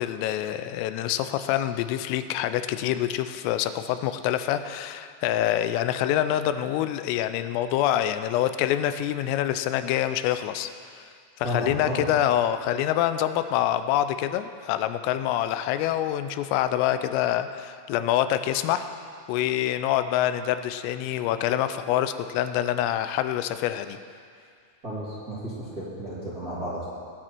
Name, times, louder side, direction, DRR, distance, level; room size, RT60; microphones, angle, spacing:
voice 1, 0.0-10.7 11.0-11.1 11.4-18.9 19.3-24.0, left 12 dB, 90° left, 10 dB, 3.2 m, -26 dB
voice 2, 11.4-12.1 24.8-26.9, equal, 25° right, -10 dB, 2.5 m, -32 dB
20.5 x 9.0 x 4.5 m, 2.2 s
omnidirectional pair, 5.8 m